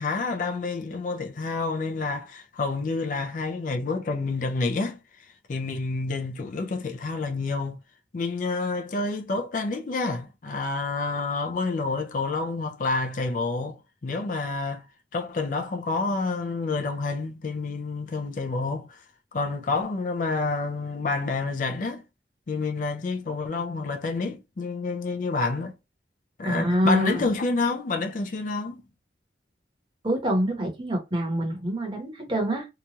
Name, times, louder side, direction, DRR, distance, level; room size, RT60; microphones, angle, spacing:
voice 1, 0.0-5.0 5.5-7.8 8.1-14.8 15.1-19.0 19.3-22.0 22.5-25.7 26.4-28.8, left 3 dB, 45° left, 0.4 m, -28 dB
voice 2, 26.4-27.3 30.0-32.7, equal, 25° right, 0.9 m, -25 dB
2.8 x 2.3 x 2.8 m
head